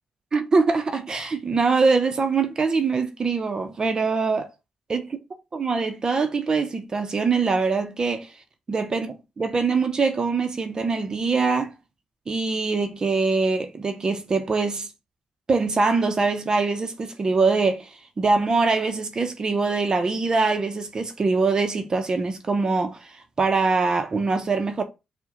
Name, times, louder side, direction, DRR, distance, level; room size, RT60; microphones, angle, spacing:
voice 1, 0.3-4.5 4.9-5.0 5.5-8.3 8.7-11.7 12.3-14.9 15.5-24.8, right 4 dB, 35° right, 0.6 m, -23 dB
4.5 x 2.1 x 2.9 m
cardioid pair, 90°, 2 cm